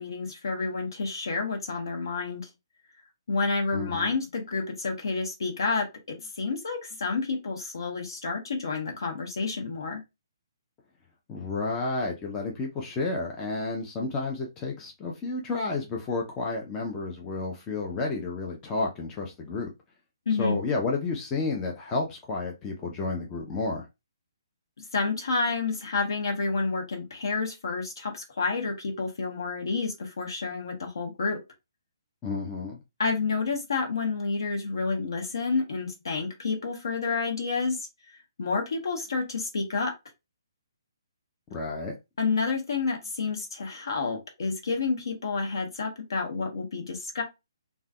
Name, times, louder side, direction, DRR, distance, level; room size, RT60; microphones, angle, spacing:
voice 1, 0.0-2.5 3.3-10.0 20.3-20.6 24.8-31.4 33.0-37.8 38.4-39.9 42.2-47.2, left 4 dB, 60° left, 1.0 m, -29 dB
voice 2, 3.7-4.1 11.3-19.7 20.4-23.9 32.2-32.8 41.5-41.9, left 3 dB, 20° left, 0.5 m, -31 dB
3.3 x 2.2 x 2.2 m
figure-of-eight pair, 135°, 2 cm